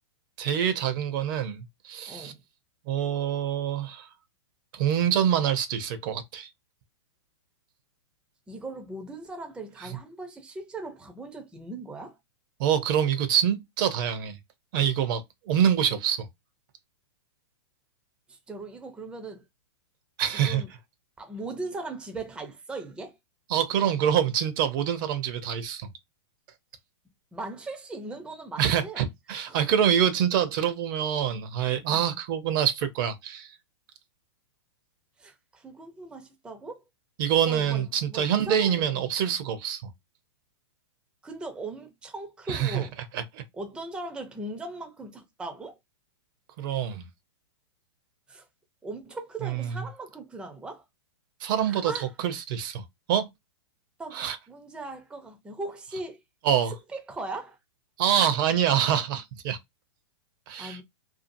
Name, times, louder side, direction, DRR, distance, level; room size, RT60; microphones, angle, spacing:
voice 1, 0.4-2.3 2.9-4.1 4.7-6.5 12.6-14.4 14.7-16.3 20.2-20.6 23.5-25.9 28.6-33.5 37.2-39.9 42.5-42.8 43.1-43.4 46.6-47.1 49.4-49.8 51.4-51.9 52.2-52.8 53.1-53.3 54.1-54.4 56.4-56.7 58.0-59.6 60.5-60.8, right 9 dB, 45° right, 0.6 m, -25 dB
voice 2, 2.1-2.4 8.5-12.2 18.3-19.4 20.3-20.7 21.2-23.2 27.3-29.1 29.5-29.6 35.2-36.8 37.4-39.1 41.2-42.9 43.5-45.8 48.3-48.5 48.8-50.8 51.6-52.1 54.0-56.2 56.7-57.6 60.6-60.8, right 2 dB, 5° right, 0.5 m, -39 dB
2.7 x 2.4 x 2.6 m
hypercardioid pair, 130°, 15 cm